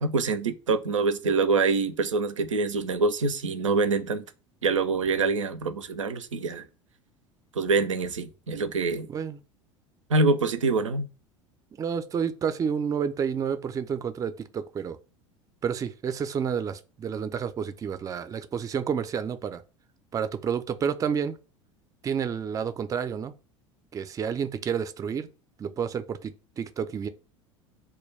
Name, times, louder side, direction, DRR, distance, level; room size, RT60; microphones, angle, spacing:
voice 1, 0.0-4.3 4.6-6.7 7.5-9.1 10.1-11.1, right 4 dB, 85° right, 0.4 m, -25 dB
voice 2, 9.1-9.4 11.7-15.0 15.6-19.6 20.1-21.4 22.0-23.3 23.9-25.3 25.6-27.1, right 7 dB, 20° right, 0.4 m, -30 dB
2.2 x 2.2 x 3.2 m
figure-of-eight pair, 70°, 16 cm